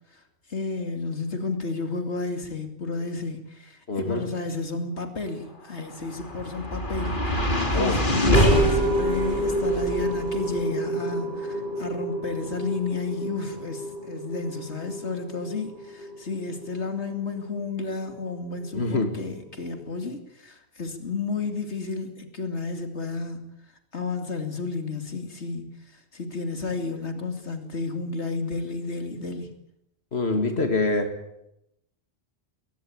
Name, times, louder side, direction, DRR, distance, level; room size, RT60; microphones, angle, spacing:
voice 1, 0.5-23.5 23.9-29.5, left 3 dB, 85° left, 7 dB, 2.9 m, -32 dB
voice 2, 3.9-4.2 7.7-8.0 18.7-19.1 30.1-31.1, left 2 dB, 70° left, 6 dB, 2.7 m, -25 dB
sound 1, 5.8-18.1, equal, 50° left, 3.5 m, -26 dB
22.0 x 20.5 x 8.8 m, 0.82 s
omnidirectional pair, 1.1 m